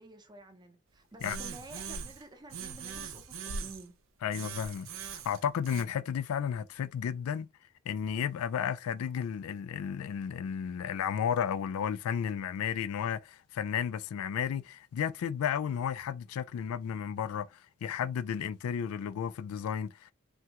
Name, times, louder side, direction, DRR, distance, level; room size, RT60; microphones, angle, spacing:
voice 1, 0.0-4.0, right 2 dB, 20° right, 0.6 m, -51 dB
sound 1, 1.2-2.2 2.5-3.9 4.3-5.8, right 5 dB, 70° right, 0.5 m, -41 dB
voice 2, 4.2-7.5 7.9-17.5 17.8-20.1, left 8 dB, 85° left, 0.3 m, -33 dB
3.4 x 2.2 x 2.8 m
head